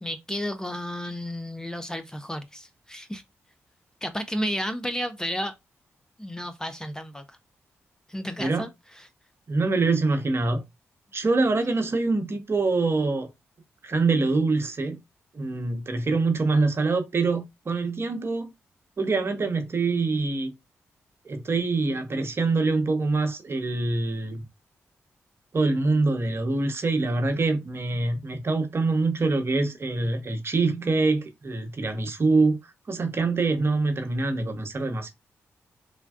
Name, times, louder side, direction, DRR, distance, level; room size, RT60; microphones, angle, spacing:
voice 1, 0.0-3.2 4.0-5.5 6.2-7.2 8.1-8.7, equal, 10° left, 0.4 m, -32 dB
voice 2, 9.5-10.6 11.1-13.3 13.8-15.0 15.3-18.5 19.0-20.5 21.2-24.4 25.5-35.1, right 3 dB, 45° right, 0.8 m, -25 dB
3.4 x 2.2 x 2.3 m
cardioid pair, 50°, 6 cm